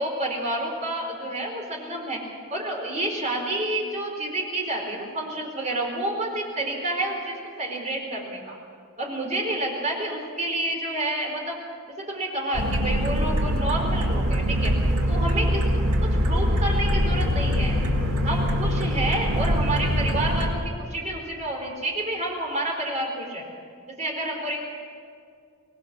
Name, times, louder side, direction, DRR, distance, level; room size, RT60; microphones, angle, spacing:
voice 1, 0.0-2.2 2.5-8.6 9.0-11.5 12.0-14.7 15.1-15.6 16.0-17.8 18.2-23.4 23.9-24.6, right 1 dB, 35° right, 0 dB, 4.2 m, -29 dB
sound 1, 12.5-20.5, equal, 75° right, 2.3 m, -23 dB
25.5 x 19.0 x 6.1 m, 2.2 s
head